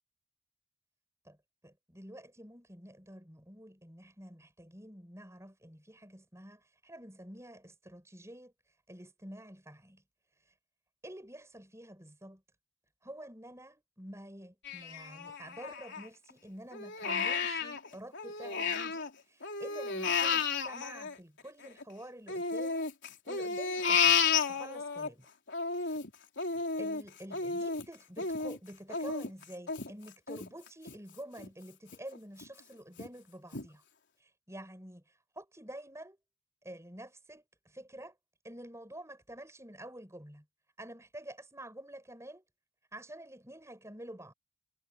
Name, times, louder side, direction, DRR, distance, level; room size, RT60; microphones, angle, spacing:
voice 1, 1.6-8.5 8.9-10.0 11.0-12.4 13.0-22.9 23.2-24.2 24.5-25.3 25.8-26.0 26.8-33.8 34.2-35.0 35.3-36.2 36.6-38.1 38.4-40.5 40.8-42.4 42.9-44.3, right 1 dB, 15° right, 6.2 m, -48 dB
Crying sobbing, 14.6-16.3 16.7-19.1 19.4-21.8 22.3-25.1 25.5-31.0 31.4-31.5 31.9-32.5 33.0-33.1 33.5-33.7, left 6 dB, 55° left, 4.3 m, -32 dB
head